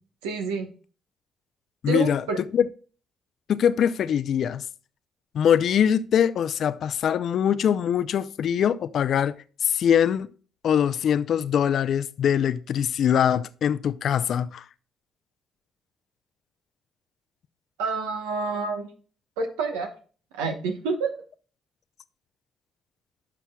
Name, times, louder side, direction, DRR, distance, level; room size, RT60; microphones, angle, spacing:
voice 1, 0.2-0.7 1.9-2.4 17.8-18.9 19.4-19.9 20.3-21.2, right 4 dB, 90° right, 1.1 m, -28 dB
voice 2, 1.8-2.2 2.5-2.7 3.5-4.6 5.3-9.3 9.6-10.3 10.6-14.6, left 8 dB, 65° left, 0.5 m, -22 dB
11.5 x 6.0 x 2.3 m
hypercardioid pair, 55°, 0 cm